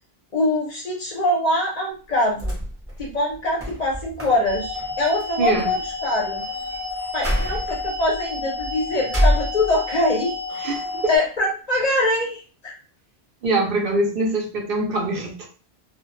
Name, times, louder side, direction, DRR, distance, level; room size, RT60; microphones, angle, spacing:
voice 1, 0.3-2.6 3.0-6.4 7.1-10.8 11.1-12.8, left 1 dB, 50° left, 0.6 m, -23 dB
sound 1, 2.1-10.1 10.5-11.3, equal, 15° right, 0.7 m, -28 dB
sound 2, 4.5-11.2, left 3 dB, 90° right, 1.1 m, -31 dB
voice 2, 5.4-5.7 10.6-11.1 13.4-15.5, right 2 dB, 65° right, 0.7 m, -23 dB
2.1 x 2.0 x 3.0 m
omnidirectional pair, 1.1 m